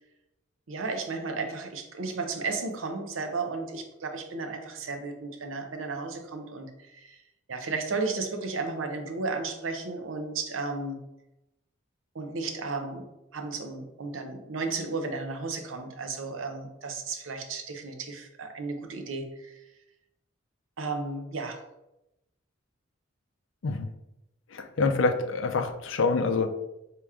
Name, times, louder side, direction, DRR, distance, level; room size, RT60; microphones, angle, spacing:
voice 1, 0.7-7.2 7.5-11.0 12.1-13.0 13.3-19.6 20.8-21.6, right 3 dB, 80° right, 5 dB, 0.7 m, -34 dB
voice 2, 24.5-26.5, left 3 dB, 70° left, 7 dB, 0.5 m, -26 dB
4.7 x 3.0 x 3.5 m, 0.90 s
head